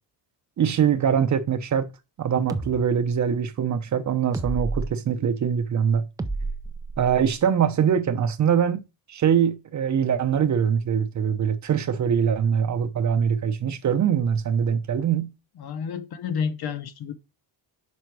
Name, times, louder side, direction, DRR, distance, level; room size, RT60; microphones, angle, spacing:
voice 1, 0.6-1.9 2.2-6.1 7.0-8.8 9.1-15.3, right 8 dB, 40° right, 0.7 m, -23 dB
sound 1, 2.5-2.8 4.3-4.9 6.2-7.3, right 3 dB, 10° right, 0.4 m, -30 dB
voice 2, 15.6-17.1, left 6 dB, 55° left, 0.9 m, -30 dB
5.5 x 5.2 x 4.6 m
cardioid pair, 150°, 44 cm